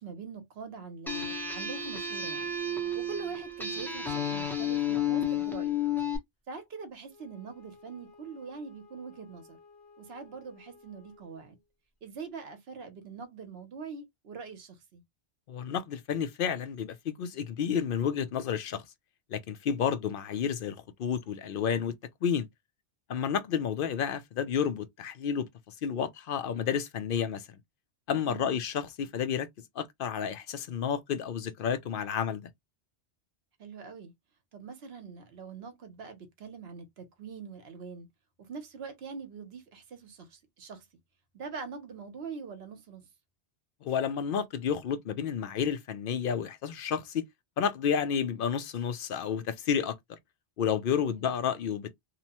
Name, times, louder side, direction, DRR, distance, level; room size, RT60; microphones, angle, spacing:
voice 1, 0.0-2.6 2.9-5.8 6.5-9.6 10.0-11.6 12.0-15.0 19.8-20.0 28.3-28.6 33.6-34.1 34.5-38.1 38.5-40.8 41.3-43.1 51.1-51.3, right 5 dB, 70° right, 0.9 m, -43 dB
sound 1, 1.1-6.2, left 5 dB, ahead, 0.8 m, -31 dB
Wind instrument woodwind instrument, 7.1-11.7, left 4 dB, 20° left, 1.2 m, -57 dB
voice 2, 15.5-18.8 19.3-21.9 22.2-22.5 23.1-25.5 25.8-27.6 28.1-29.5 29.8-32.5 43.8-47.2 47.6-50.2 50.6-51.9, left 7 dB, 60° left, 0.6 m, -31 dB
2.9 x 2.0 x 2.8 m
omnidirectional pair, 1.1 m